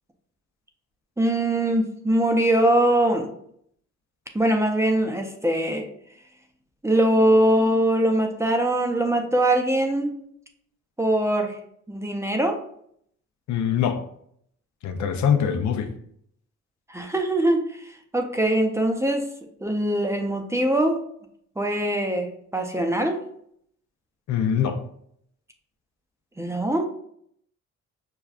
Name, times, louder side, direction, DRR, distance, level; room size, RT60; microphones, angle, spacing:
voice 1, 1.2-3.3 4.3-5.9 6.8-10.1 11.0-11.6 11.9-12.6 16.9-19.3 19.6-21.0 21.6-23.2 26.4-26.8, right 1 dB, 10° right, 3 dB, 0.5 m, -22 dB
voice 2, 13.5-14.0 14.8-15.9 24.3-24.8, left 8 dB, 70° left, 7 dB, 0.6 m, -23 dB
6.1 x 2.2 x 2.4 m, 0.68 s
cardioid pair, 90°, 30 cm